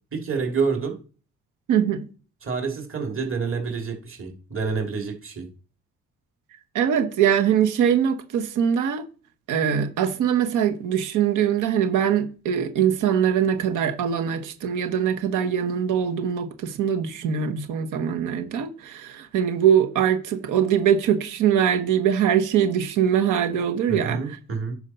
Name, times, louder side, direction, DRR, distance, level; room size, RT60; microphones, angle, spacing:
voice 1, 0.1-1.0 2.4-5.5 23.9-24.8, right 5 dB, 45° right, 2.6 m, -28 dB
voice 2, 1.7-2.0 6.7-9.1 9.5-24.4, right 8 dB, 85° right, 1.1 m, -22 dB
9.5 x 4.4 x 5.6 m
cardioid pair, 90°, 30 cm